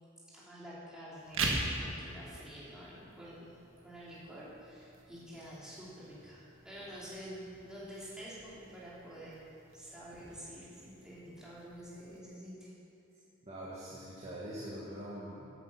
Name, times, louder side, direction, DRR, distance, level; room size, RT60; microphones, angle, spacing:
voice 1, 0.3-3.6 3.8-9.5 9.7-12.7, equal, 5° right, -9 dB, 3.3 m, -48 dB
sound 1, 1.2-12.2, right 2 dB, 75° right, 1.7 m, -43 dB
voice 2, 13.4-15.5, equal, 30° right, -8 dB, 1.7 m, -43 dB
13.0 x 9.2 x 5.8 m, 2.9 s
head